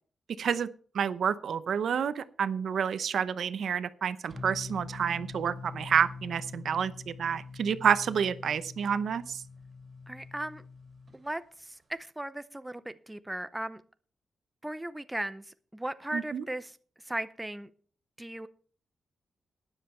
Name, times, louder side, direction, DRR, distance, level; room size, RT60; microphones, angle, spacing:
voice 1, 0.4-0.7 0.9-9.4 16.1-16.4, right 7 dB, 65° right, 0.7 m, -29 dB
sound 1, 4.3-11.2, left 4 dB, 35° right, 2.4 m, -44 dB
voice 2, 10.1-10.6 11.1-13.8 14.6-16.8 17.0-17.7 18.2-18.5, right 1 dB, 10° right, 0.5 m, -37 dB
12.5 x 10.0 x 4.4 m
wide cardioid pair, 140°, 0 cm